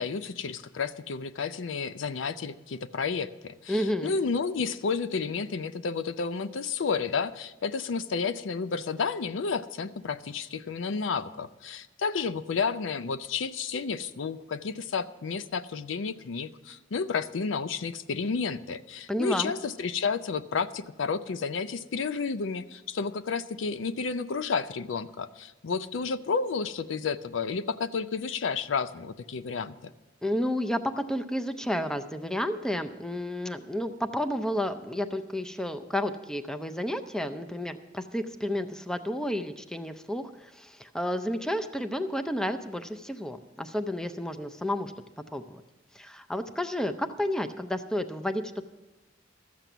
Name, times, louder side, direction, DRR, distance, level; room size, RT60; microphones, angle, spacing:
voice 1, 0.0-29.9, left 5 dB, 70° left, 14 dB, 0.5 m, -31 dB
voice 2, 3.7-4.1 19.1-19.5 30.2-44.9 45.3-45.6 45.9-48.7, left 1 dB, 5° left, 9 dB, 0.5 m, -31 dB
13.5 x 7.6 x 6.8 m, 1.0 s
head